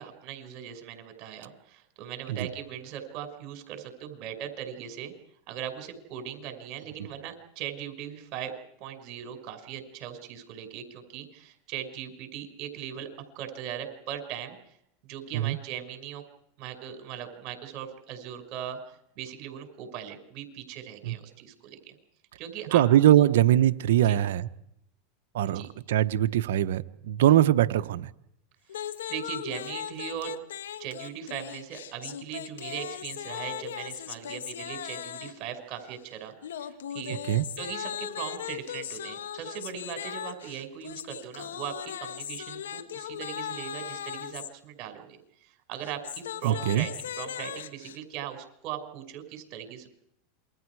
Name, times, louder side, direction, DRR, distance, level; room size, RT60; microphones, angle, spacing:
voice 1, 0.0-5.1 5.5-8.5 8.8-13.1 13.4-14.6 15.1-16.2 16.6-22.0 22.4-22.8 23.1-23.3 24.0-24.2 25.5-25.7 28.7-30.3 30.8-36.3 36.6-37.2 37.6-45.2 45.4-49.9, right 10 dB, 50° right, 6 dB, 5.8 m, -39 dB
voice 2, 22.7-24.5 25.3-28.1 37.3-37.4 46.4-46.9, right 12 dB, 80° right, 11 dB, 1.1 m, -22 dB
sound 1, 28.7-35.5 36.4-44.5 45.7-48.0, left 10 dB, 90° left, 1.7 m, -38 dB
28.0 x 23.5 x 4.8 m, 0.77 s
hypercardioid pair, 115°, 0 cm